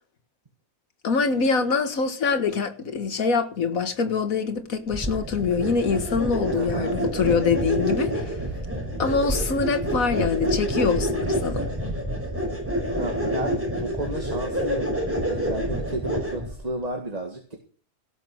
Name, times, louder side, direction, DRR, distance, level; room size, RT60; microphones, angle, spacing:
voice 1, 1.0-8.3 9.0-11.7, left 5 dB, 70° left, 1.9 m, -24 dB
sound 1, 4.9-16.6, equal, 10° right, 5.3 m, -27 dB
voice 2, 6.5-7.0 13.0-17.6, right 1 dB, 25° right, 2.0 m, -33 dB
17.5 x 6.8 x 6.3 m
omnidirectional pair, 1.5 m